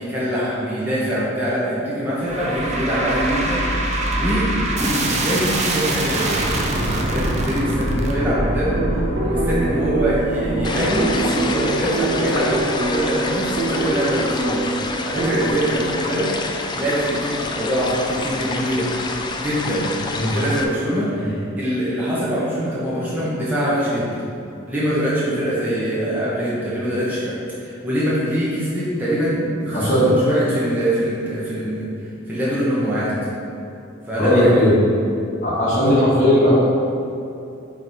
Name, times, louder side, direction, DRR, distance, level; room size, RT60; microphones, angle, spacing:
voice 1, 0.0-6.4 7.1-8.8 9.2-16.3 16.7-19.0 19.4-19.9 20.3-24.1 24.7-31.9 32.3-33.1 34.1-34.7 35.8-36.0, equal, 10° right, -9 dB, 1.0 m, -23 dB
sound 1, 2.2-13.5, right 1 dB, 35° right, 0.6 m, -25 dB
sound 2, 8.1-15.5, right 2 dB, 55° right, 1.0 m, -25 dB
sound 3, 10.6-20.6, left 3 dB, 20° left, 0.3 m, -28 dB
voice 2, 29.7-30.1 34.1-34.7 35.4-36.5, equal, 40° left, -9 dB, 1.4 m, -17 dB
5.1 x 4.8 x 4.0 m, 2.7 s
head